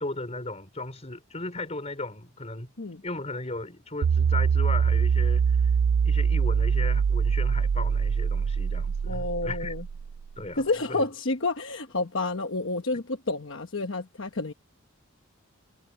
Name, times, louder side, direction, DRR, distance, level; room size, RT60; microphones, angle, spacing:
voice 1, 0.0-2.7 3.0-5.7 6.0-9.7 10.4-11.0, left 2 dB, 30° left, 3.7 m, -36 dB
sound 1, 4.0-10.3, right 6 dB, 65° right, 0.3 m, -24 dB
voice 2, 9.1-9.8 10.6-14.5, left 3 dB, 60° left, 1.1 m, -29 dB
head